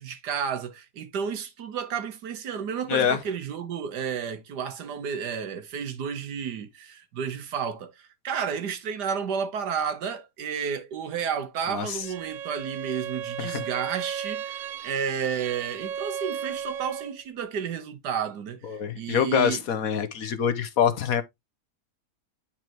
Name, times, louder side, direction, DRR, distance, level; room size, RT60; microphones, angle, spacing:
voice 1, 0.0-19.6, right 7 dB, 80° right, 1.7 m, -32 dB
Bowed string instrument, 12.0-17.2, right 8 dB, 60° right, 0.9 m, -35 dB
voice 2, 18.7-21.2, left 8 dB, 65° left, 1.2 m, -25 dB
9.7 x 4.5 x 2.9 m
omnidirectional pair, 1.8 m